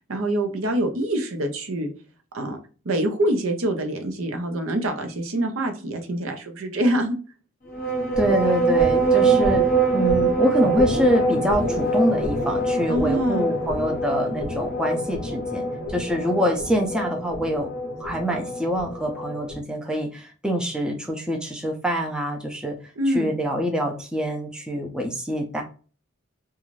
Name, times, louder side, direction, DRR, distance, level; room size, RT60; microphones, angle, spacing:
voice 1, 0.1-1.9 2.3-2.6 2.8-7.2 12.9-13.5 23.0-23.3, right 1 dB, 85° right, 6 dB, 0.7 m, -25 dB
sound 1, 7.7-19.6, right 3 dB, 40° left, 0.6 m, -24 dB
voice 2, 8.2-9.6 9.9-15.6 15.9-17.7 18.0-22.8 23.1-25.6, equal, 5° right, 1 dB, 0.4 m, -25 dB
2.5 x 2.3 x 3.1 m, 0.37 s
head